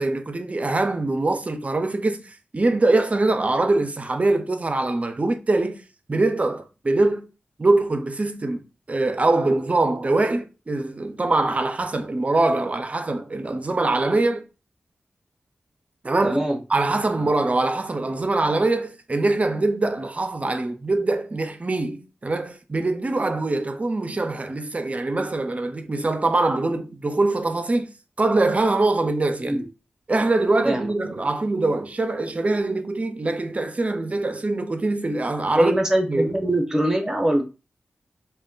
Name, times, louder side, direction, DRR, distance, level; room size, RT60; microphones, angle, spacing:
voice 1, 0.0-5.8 6.1-7.3 7.6-14.4 16.0-16.4 16.7-27.9 28.2-29.6 30.1-35.7 36.1-36.3, right 2 dB, 40° right, 0.5 m, -23 dB
voice 2, 16.2-16.6 29.4-29.7 30.6-30.9 35.5-37.4, right 1 dB, 15° right, 0.8 m, -22 dB
2.2 x 2.1 x 3.8 m
cardioid pair, 50°, 4 cm